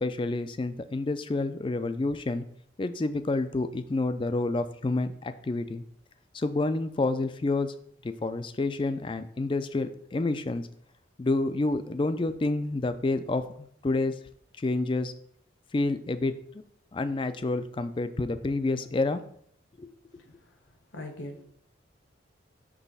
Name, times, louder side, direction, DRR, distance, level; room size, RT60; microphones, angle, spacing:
voice 1, 0.0-2.4 2.8-5.8 6.3-7.7 8.0-10.7 11.2-13.4 13.8-14.1 14.6-15.1 15.7-16.3 16.9-19.2 19.8-19.9, left 2 dB, 25° left, 11 dB, 0.3 m, -28 dB
voice 2, 20.9-21.4, left 1 dB, 75° left, 4 dB, 1.2 m, -40 dB
6.1 x 3.2 x 5.4 m, 0.64 s
head